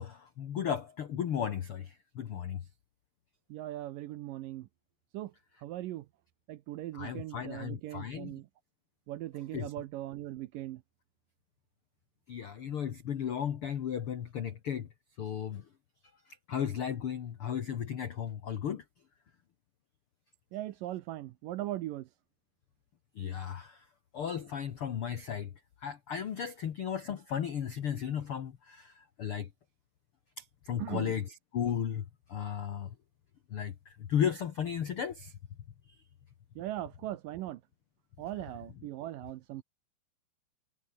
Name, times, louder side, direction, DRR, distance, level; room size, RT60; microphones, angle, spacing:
voice 1, 0.0-2.6 6.9-8.3 9.5-9.7 12.3-14.9 15.2-15.6 16.5-18.8 23.2-23.8 24.1-25.5 25.8-29.5 30.4-32.0 32.3-32.9 33.5-35.3, left 8 dB, 80° left, 1.2 m, -35 dB
voice 2, 3.5-4.7 5.1-5.3 5.6-6.1 6.5-8.5 9.1-10.8 20.5-22.1 30.8-31.2 36.6-37.6 38.2-39.6, right 14 dB, 75° right, 2.1 m, -39 dB
omnidirectional pair, 4.6 m